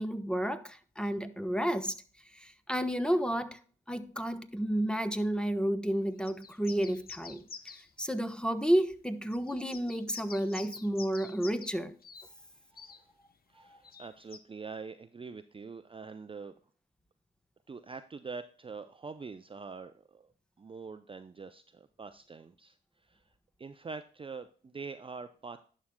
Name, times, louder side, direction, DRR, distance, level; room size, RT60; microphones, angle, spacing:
voice 1, 0.0-1.9 2.3-3.6 3.9-7.4 8.0-11.9 13.6-13.8, right 1 dB, 5° left, 1.0 m, -31 dB
sound 1, 6.3-7.9 8.7-8.8 9.3-11.8 12.0-12.3 12.8-13.0 13.8-14.4, left 5 dB, 45° left, 0.8 m, -48 dB
voice 2, 13.5-16.6 17.7-20.3 20.6-22.8 23.0-23.2 23.6-25.6, right 4 dB, 25° right, 0.5 m, -44 dB
11.0 x 6.3 x 2.2 m
hypercardioid pair, 45°, 21 cm